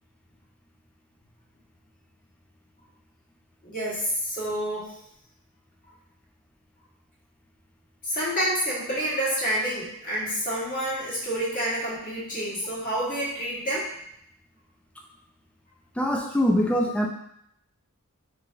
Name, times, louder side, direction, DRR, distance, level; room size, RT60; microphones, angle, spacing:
voice 1, 3.6-4.9 8.0-13.9, equal, 35° left, -7 dB, 1.1 m, -28 dB
voice 2, 16.0-17.1, equal, 5° left, 0 dB, 0.3 m, -23 dB
3.8 x 3.1 x 2.4 m, 0.74 s
head